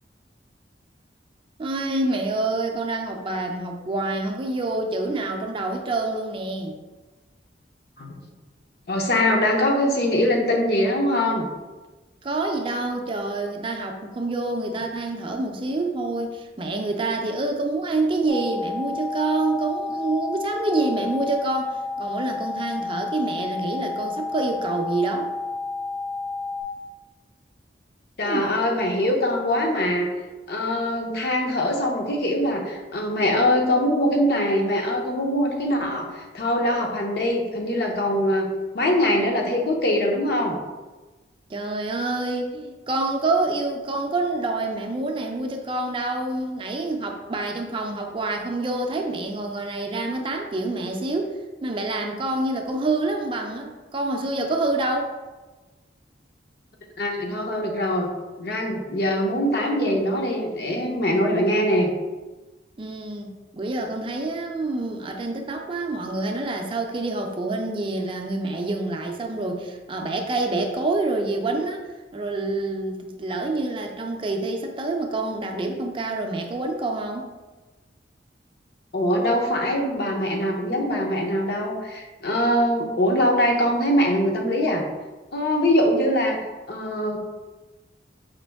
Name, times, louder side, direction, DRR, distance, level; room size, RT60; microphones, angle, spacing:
voice 1, 1.6-6.8 12.2-25.3 28.2-28.5 41.5-51.3 51.6-55.1 62.8-71.8 72.1-77.2, right 2 dB, 30° right, 3 dB, 0.4 m, -27 dB
voice 2, 8.9-11.5 28.2-30.1 30.5-38.5 38.7-40.6 57.0-58.1 58.4-61.9 78.9-84.8 85.3-86.4 86.7-87.2, left 1 dB, 60° left, 0 dB, 0.8 m, -22 dB
sound 1, 18.3-26.6, left 3 dB, 80° right, 0.5 m, -31 dB
5.1 x 3.0 x 3.4 m, 1.2 s
head